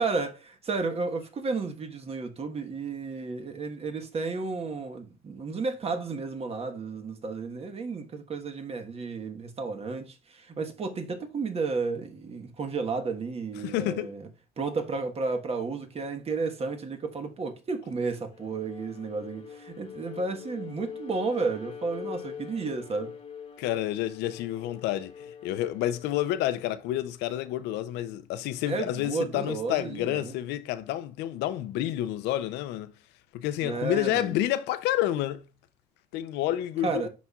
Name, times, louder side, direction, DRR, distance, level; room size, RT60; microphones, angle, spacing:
voice 1, 0.0-14.3 14.6-23.1 28.7-30.4 33.6-34.4 36.8-37.1, right 4 dB, 35° right, 1.3 m, -32 dB
voice 2, 13.6-14.1 23.6-32.9 33.3-35.4 36.1-37.1, left 13 dB, 90° left, 0.5 m, -29 dB
Bowed string instrument, 18.3-26.7, left 7 dB, 35° left, 1.1 m, -43 dB
11.0 x 4.1 x 2.3 m
cardioid pair, 110°, 17 cm